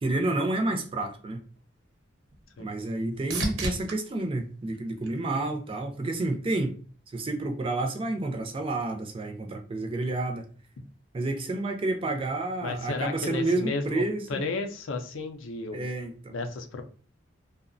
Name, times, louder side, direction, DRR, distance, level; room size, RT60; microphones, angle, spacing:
voice 1, 0.0-1.4 2.6-6.7 7.1-10.5 11.1-14.4 15.7-16.3, right 2 dB, 25° right, 0.3 m, -30 dB
sound 1, 1.6-5.8 6.3-6.9 14.7-14.8, right 1 dB, 90° right, 0.8 m, -38 dB
voice 2, 12.6-14.0 14.3-15.8 16.3-16.8, left 3 dB, 75° left, 0.4 m, -33 dB
2.7 x 2.0 x 2.5 m
head